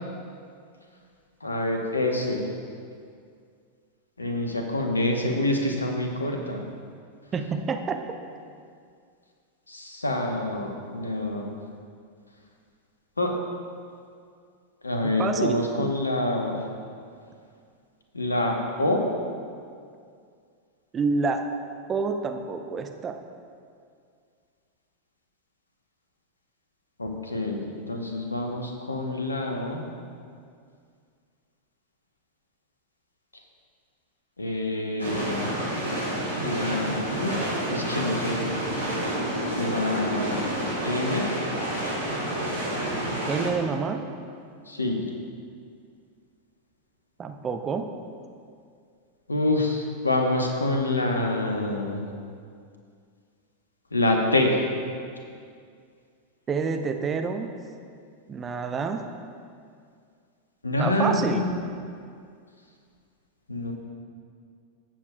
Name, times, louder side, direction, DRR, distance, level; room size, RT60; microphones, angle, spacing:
voice 1, 1.4-2.5 4.2-6.7 9.7-11.5 13.2-13.3 14.8-16.6 18.1-19.0 27.0-29.8 34.4-35.6 36.4-37.4 37.7-38.5 39.5-40.5 40.8-41.3 44.7-45.0 49.3-52.1 53.9-54.6 60.6-61.6 63.5-63.7, left 2 dB, 80° left, 2 dB, 1.1 m, -26 dB
voice 2, 7.3-8.0 15.0-15.9 20.9-21.5 21.9-23.2 43.3-44.0 47.2-47.9 56.5-57.5 58.3-59.1 60.8-61.5, right 5 dB, 20° right, 5 dB, 0.8 m, -28 dB
sound 1, 35.0-43.5, right 1 dB, 85° right, 2.5 m, -29 dB
17.5 x 7.2 x 2.4 m, 2.3 s
figure-of-eight pair, 90°, 0 cm